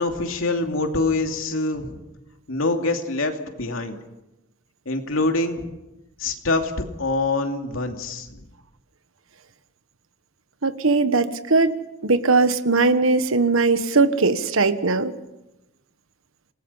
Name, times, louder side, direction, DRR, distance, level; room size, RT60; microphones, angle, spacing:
voice 1, 0.0-2.0 2.5-4.0 4.9-5.7 6.2-6.7 7.0-8.4, left 2 dB, 75° left, 4 dB, 2.7 m, -25 dB
voice 2, 10.6-11.7 12.0-15.1, right 3 dB, 75° right, 11 dB, 1.3 m, -19 dB
27.5 x 19.5 x 5.7 m, 0.95 s
head